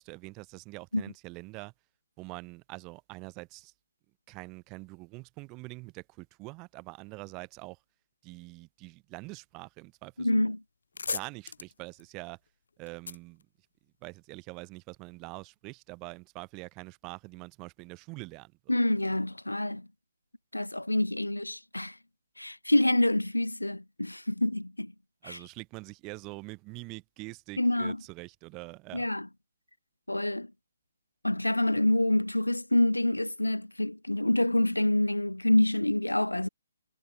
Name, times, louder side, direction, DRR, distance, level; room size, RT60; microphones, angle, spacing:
voice 1, 0.0-1.7 2.2-3.7 4.3-7.8 8.2-10.5 11.1-12.4 12.8-13.5 14.0-18.8 25.2-29.1, right 25 dB, 20° right, 4.2 m, -44 dB
voice 2, 10.2-10.6 18.7-19.9 20.5-22.0 22.4-24.9 25.2-25.4 27.6-28.0 28.9-29.3 30.1-30.5 31.2-36.5, left 1 dB, 85° left, 0.3 m, -27 dB
sound 1, 10.2-10.4 10.7-14.3, left 5 dB, 60° left, 3.0 m, -40 dB
figure-of-eight pair, 135°, 0 cm